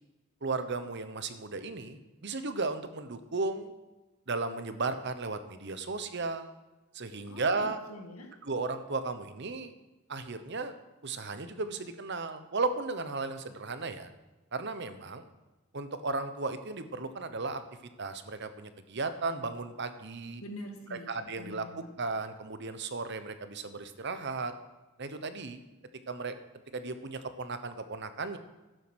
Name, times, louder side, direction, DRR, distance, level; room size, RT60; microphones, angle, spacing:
voice 1, 0.4-3.7 4.3-6.6 6.9-7.8 8.4-9.7 10.1-10.7 11.0-14.1 14.5-15.3 15.7-17.6 18.0-20.4 20.9-21.6 22.0-24.5 25.0-25.6 26.1-26.3 26.7-28.4, right 3 dB, 55° right, 10 dB, 0.9 m, -35 dB
voice 2, 7.3-8.3 20.4-21.9, left 1 dB, 85° left, 3 dB, 2.1 m, -45 dB
12.5 x 9.2 x 6.3 m, 1.1 s
head